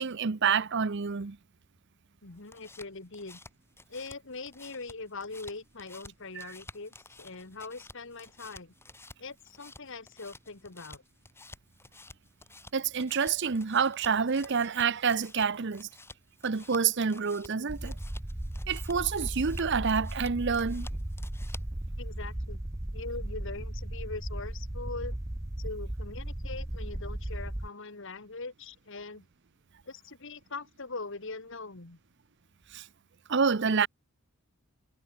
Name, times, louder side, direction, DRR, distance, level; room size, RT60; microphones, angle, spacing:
voice 1, 0.0-1.4 6.4-6.5 12.7-15.9 16.4-17.9 18.7-20.9 32.7-32.8 33.3-33.9, right 6 dB, 50° right, 0.7 m, -28 dB
voice 2, 2.2-3.4 3.9-8.7 9.2-11.0 22.0-22.6 22.9-25.1 25.6-29.3 29.8-32.0, left 3 dB, 60° left, 1.7 m, -42 dB
sound 1, 2.3-21.8, left 2 dB, 10° left, 5.3 m, -53 dB
sound 2, 17.7-27.7, right 1 dB, 15° right, 0.7 m, -36 dB
head